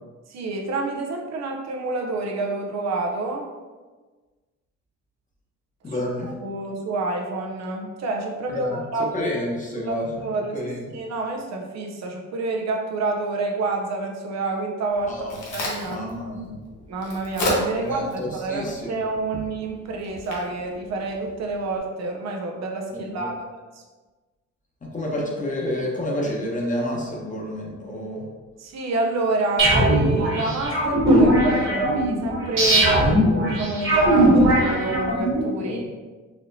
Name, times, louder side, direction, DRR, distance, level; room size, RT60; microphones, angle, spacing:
voice 1, 0.3-3.5 6.2-9.1 9.8-9.9 10.2-15.3 15.5-16.0 16.9-23.5 28.6-36.0, right 3 dB, 60° right, 1 dB, 0.6 m, -28 dB
voice 2, 5.8-6.3 8.5-8.8 9.1-10.3 10.5-10.9 15.1-15.4 15.8-16.6 17.8-18.9 22.9-23.3 24.9-28.2 35.6-35.9, left 1 dB, 25° left, -3 dB, 1.0 m, -29 dB
Crack, 14.9-21.8, left 1 dB, 70° left, 1.1 m, -33 dB
sound 1, 29.6-35.4, right 1 dB, 40° right, 1.4 m, -19 dB
4.2 x 2.9 x 2.6 m, 1.3 s
cardioid pair, 90°, 30 cm